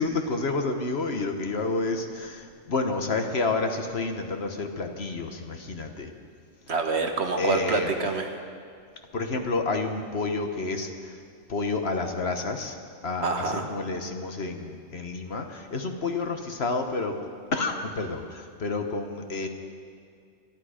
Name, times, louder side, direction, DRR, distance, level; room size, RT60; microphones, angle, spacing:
voice 1, 0.0-6.1 7.4-7.9 9.1-11.2 11.5-12.8 13.0-17.2 17.5-19.5, left 3 dB, 55° left, 5 dB, 1.3 m, -29 dB
voice 2, 6.7-8.3 13.2-13.7, right 4 dB, 60° right, 4 dB, 1.5 m, -26 dB
25.0 x 10.5 x 5.0 m, 2.3 s
omnidirectional pair, 1.3 m